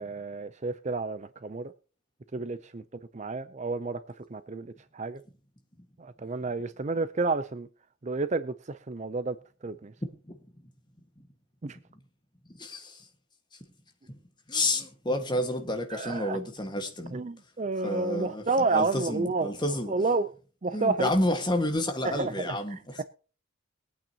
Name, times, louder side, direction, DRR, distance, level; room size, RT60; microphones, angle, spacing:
voice 1, 0.0-1.7 2.3-2.8 3.1-4.0 4.3-5.2 6.0-7.7 8.0-9.4 9.6-9.9 11.6-11.8 15.9-16.4 17.1-19.5 19.9-20.3 20.6-21.1 22.0-23.0, right 3 dB, 35° right, 0.5 m, -30 dB
voice 2, 12.6-13.0 14.5-17.2 17.8-18.4 18.7-19.9 20.7-23.0, left 1 dB, 20° left, 1.6 m, -30 dB
22.0 x 8.8 x 2.9 m
head